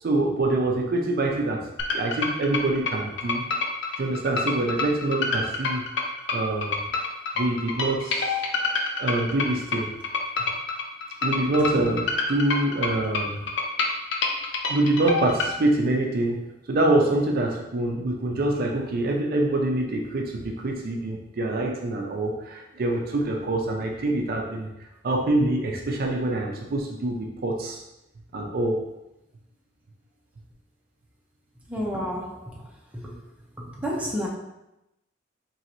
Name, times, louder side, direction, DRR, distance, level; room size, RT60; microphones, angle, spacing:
voice 1, 0.0-3.4 3.9-5.8 6.3-6.8 7.4-8.4 9.0-9.9 11.2-13.4 14.7-24.7 25.0-27.8 28.3-28.9, right 2 dB, 50° right, 1 dB, 0.4 m, -25 dB
sound 1, 1.8-15.5, left 4 dB, 65° left, 0.5 m, -27 dB
voice 2, 31.7-32.7 33.8-34.3, equal, 5° right, -4 dB, 0.6 m, -30 dB
3.8 x 3.0 x 2.9 m, 0.91 s
head